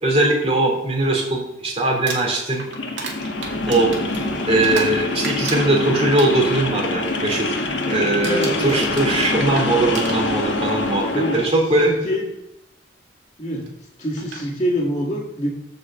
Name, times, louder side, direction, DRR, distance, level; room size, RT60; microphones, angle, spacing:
voice 1, 0.0-2.7 3.7-3.9 4.4-7.5 7.9-11.0 11.3-11.9, right 2 dB, 30° right, -1 dB, 2.6 m, -20 dB
Crumpling crinkling, 1.9-5.0 5.2-6.6 7.0-7.3 7.6-7.9 8.2-10.6 11.6-11.7 13.7-13.8 14.2-14.5, right 4 dB, 70° right, 2.0 m, -33 dB
sound 1, 2.7-11.5, left 2 dB, 70° left, 1.3 m, -25 dB
voice 2, 8.2-8.9 11.1-11.4 11.8-12.3 13.4-13.7 14.0-15.5, equal, 30° left, -9 dB, 2.1 m, -25 dB
8.2 x 4.9 x 7.4 m, 0.89 s
head